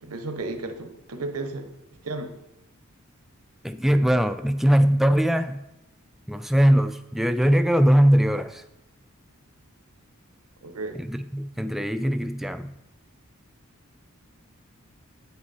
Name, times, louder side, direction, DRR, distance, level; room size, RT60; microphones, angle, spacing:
voice 1, 0.0-1.7 2.0-2.3 10.6-11.0, right 2 dB, 90° right, 7 dB, 0.9 m, -33 dB
voice 2, 3.6-5.6 6.3-8.6 10.9-12.7, equal, ahead, 9 dB, 0.3 m, -21 dB
8.6 x 5.9 x 4.1 m, 0.89 s
head